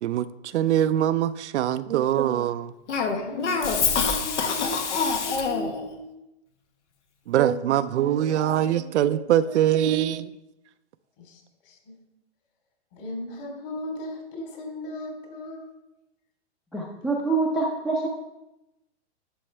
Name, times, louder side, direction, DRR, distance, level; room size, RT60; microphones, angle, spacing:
voice 1, 0.0-2.7 7.3-10.3, right 11 dB, 80° right, 0.5 m, -23 dB
Cough, 2.9-5.8, left 5 dB, 85° left, 1.4 m, -25 dB
voice 2, 3.1-6.2 11.2-11.9 12.9-15.7, left 1 dB, 50° left, 3.3 m, -36 dB
voice 3, 16.7-18.1, right 3 dB, ahead, 0.5 m, -25 dB
11.0 x 6.4 x 3.3 m
hypercardioid pair, 140°, 34 cm